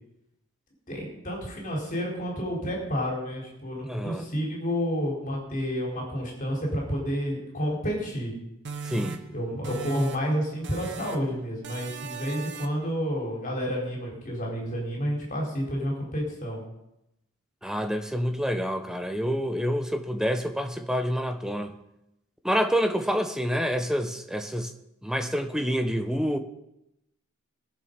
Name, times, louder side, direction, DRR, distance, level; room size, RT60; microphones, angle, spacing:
voice 1, 0.9-8.3 9.3-16.6, equal, 40° left, 4.0 m, -30 dB
voice 2, 3.9-4.3 8.8-9.2 17.6-21.7 22.4-24.7 25.0-26.4, equal, 5° right, 0.9 m, -27 dB
sound 1, 8.6-10.4 10.6-11.3 11.6-12.9, right 5 dB, 55° right, 1.0 m, -39 dB
20.5 x 7.2 x 5.2 m
head